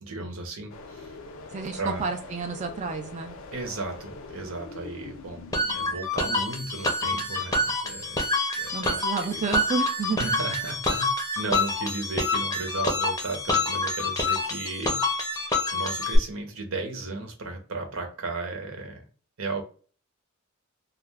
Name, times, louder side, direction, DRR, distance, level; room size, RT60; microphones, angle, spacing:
voice 1, 0.0-1.2 1.8-2.0 3.5-5.4 5.7-8.2 8.6-9.0 9.3-9.4 10.2-11.1 11.4-15.0 15.3-19.0 19.4-19.6, right 3 dB, 85° right, 4 dB, 0.8 m, -35 dB
sound 1, 0.7-6.0, left 2 dB, 75° left, 0.5 m, -43 dB
voice 2, 1.5-3.4 8.7-10.4, right 4 dB, 35° right, 4 dB, 0.3 m, -30 dB
sound 2, 5.5-16.2, left 2 dB, 15° left, 0.6 m, -27 dB
2.3 x 2.2 x 3.2 m, 0.40 s
head